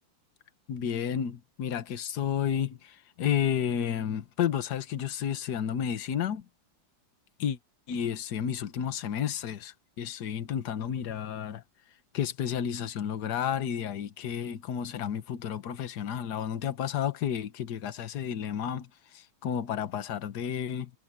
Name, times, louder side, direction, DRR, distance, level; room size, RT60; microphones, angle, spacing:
voice 1, 0.7-6.5 7.4-7.6 7.9-11.6 12.1-20.9, left 9 dB, 55° left, 1.7 m, -31 dB
omnidirectional pair, 2.2 m